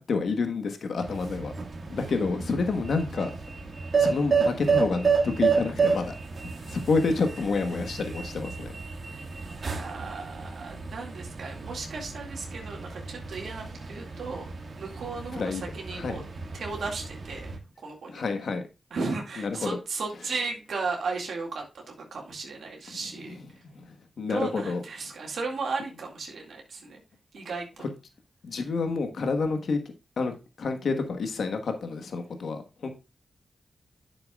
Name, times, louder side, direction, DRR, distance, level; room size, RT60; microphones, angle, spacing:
voice 1, 0.1-1.5 1.9-3.3 4.0-6.1 6.7-8.7 15.4-15.6 15.9-16.2 18.1-18.6 19.4-19.8 23.9-24.8 28.4-29.8 30.2-30.3 30.6-32.9, left 4 dB, 75° left, 6 dB, 1.3 m, -28 dB
sound 1, 1.0-17.6, right 5 dB, 60° right, 1.8 m, -31 dB
voice 2, 1.8-2.3 9.1-14.5 14.8-16.2 16.5-17.5 17.8-18.2 18.9-23.6 24.2-27.0 27.3-27.9 28.9-29.0, right 4 dB, 80° right, 1 dB, 2.2 m, -35 dB
9.7 x 6.8 x 2.4 m, 0.29 s
cardioid pair, 55°, 0 cm